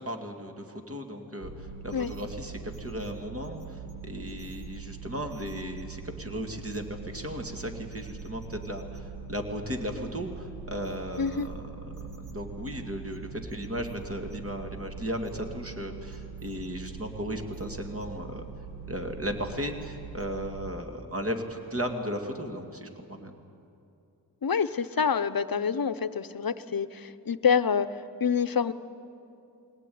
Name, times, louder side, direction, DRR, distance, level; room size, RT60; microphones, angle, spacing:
voice 1, 0.0-11.9 12.3-18.4 18.9-23.3, equal, 35° right, 4 dB, 2.4 m, -36 dB
sound 1, 1.4-20.7, right 5 dB, 80° right, 1.9 m, -42 dB
voice 2, 11.2-11.5 24.4-27.9 28.2-28.7, left 6 dB, 55° left, 13 dB, 0.9 m, -27 dB
22.0 x 18.0 x 9.5 m, 2.7 s
wide cardioid pair, 55°, 41 cm